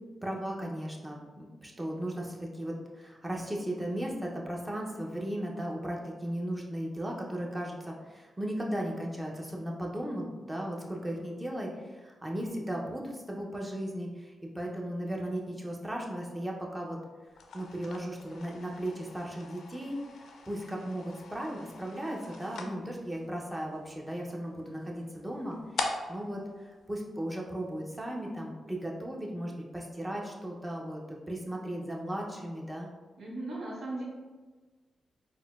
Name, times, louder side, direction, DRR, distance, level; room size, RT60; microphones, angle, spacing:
voice 1, 0.2-17.0 17.5-32.9, right 1 dB, 20° right, -1 dB, 0.6 m, -36 dB
sound 1, 17.3-27.7, left 3 dB, 75° left, 0.3 m, -43 dB
voice 2, 33.2-34.0, right 2 dB, 70° right, -4 dB, 1.0 m, -37 dB
4.1 x 2.0 x 2.3 m, 1.3 s
cardioid pair, 60°, 0 cm